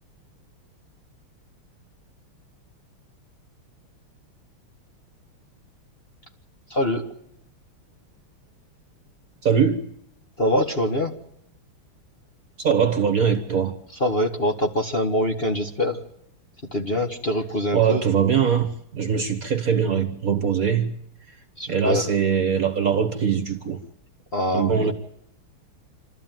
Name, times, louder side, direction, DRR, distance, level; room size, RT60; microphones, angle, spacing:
voice 1, 6.7-7.0 10.4-11.1 14.0-16.0 16.7-18.0 21.6-22.0 24.3-24.9, left 1 dB, 30° left, 1.7 m, -24 dB
voice 2, 9.4-9.8 12.6-13.7 17.7-20.9 21.7-23.8 24.5-24.9, right 7 dB, 45° right, 1.7 m, -22 dB
27.0 x 13.5 x 9.2 m
omnidirectional pair, 2.4 m